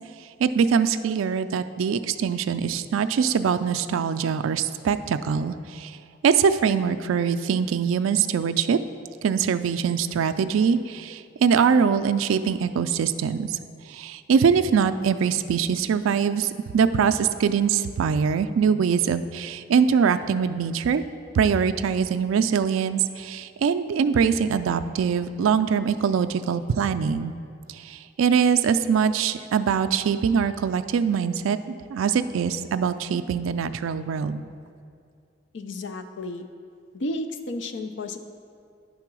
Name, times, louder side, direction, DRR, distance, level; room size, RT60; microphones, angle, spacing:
voice 1, 0.4-6.0 6.2-8.8 9.2-13.6 13.9-21.0 21.3-27.3 27.7-31.6 31.9-34.4, right 6 dB, 85° right, 10 dB, 0.3 m, -23 dB
voice 2, 35.5-36.5 36.9-38.2, left 2 dB, 65° left, 8 dB, 0.5 m, -32 dB
9.7 x 3.8 x 6.1 m, 2.4 s
head